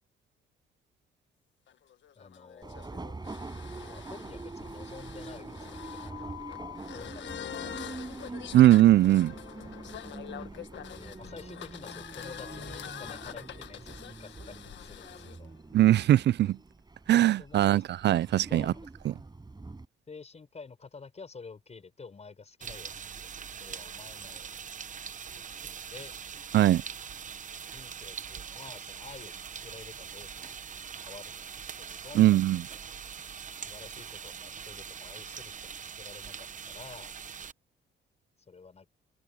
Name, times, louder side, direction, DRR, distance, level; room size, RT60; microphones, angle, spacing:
sound 1, 1.7-15.4, left 10 dB, 65° left, 1.6 m, -45 dB
voice 1, 2.2-2.9 3.8-8.4 10.0-10.6 11.0-15.5 17.4-17.8 18.5-18.9 20.1-23.3 23.6-24.5 25.4-26.1 27.7-30.5 31.0-32.6 33.7-37.2 38.5-38.9, left 4 dB, 35° left, 6.2 m, -50 dB
Subway metro underground, 2.6-19.9, right 3 dB, 20° right, 7.1 m, -44 dB
voice 2, 8.5-9.3 15.7-16.6 17.1-18.7 19.1-19.2 26.5-26.8 32.1-32.6, right 13 dB, 60° right, 0.4 m, -21 dB
sound 2, 22.6-37.5, right 7 dB, 40° right, 0.9 m, -42 dB
cardioid pair, 90°, 20 cm